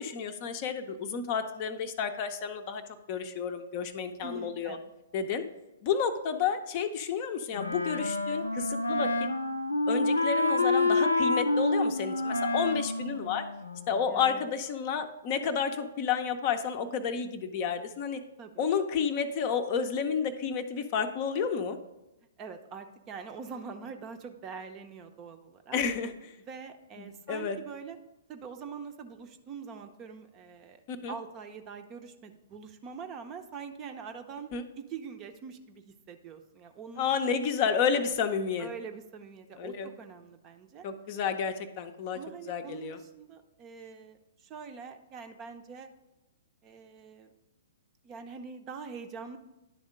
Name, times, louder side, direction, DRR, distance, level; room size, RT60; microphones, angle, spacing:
voice 1, 0.0-2.8 3.1-4.8 5.1-5.4 5.8-9.1 9.9-13.5 13.9-18.2 18.6-21.8 25.7-26.3 27.0-27.6 30.9-31.2 34.5-34.6 37.0-38.7 39.6-39.9 40.8-42.2 42.5-43.0, left 6 dB, 40° left, 8 dB, 0.6 m, -31 dB
voice 2, 4.2-4.9 14.1-14.5 18.4-18.5 22.4-25.8 26.4-28.0 28.3-37.1 37.9-38.1 38.6-40.9 42.1-45.9 46.6-47.3 48.0-49.4, right 6 dB, 25° right, 7 dB, 0.6 m, -44 dB
Wind instrument woodwind instrument, 7.5-14.1, left 2 dB, 80° left, 0.5 m, -28 dB
10.5 x 3.6 x 5.1 m, 0.97 s
figure-of-eight pair, 115°, 0 cm